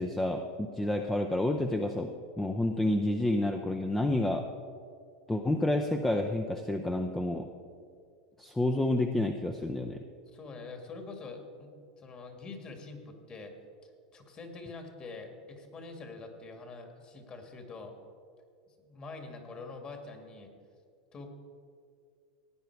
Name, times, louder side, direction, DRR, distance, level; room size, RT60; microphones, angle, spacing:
voice 1, 0.0-2.1 2.4-4.5 5.3-7.5 8.4-10.0, left 1 dB, 10° left, 4 dB, 0.6 m, -29 dB
voice 2, 10.3-11.7 12.0-13.5 13.8-17.9 18.7-20.5 21.1-21.3, left 3 dB, 30° left, 4 dB, 2.1 m, -45 dB
16.5 x 9.1 x 4.7 m, 2.2 s
hypercardioid pair, 115°, 3 cm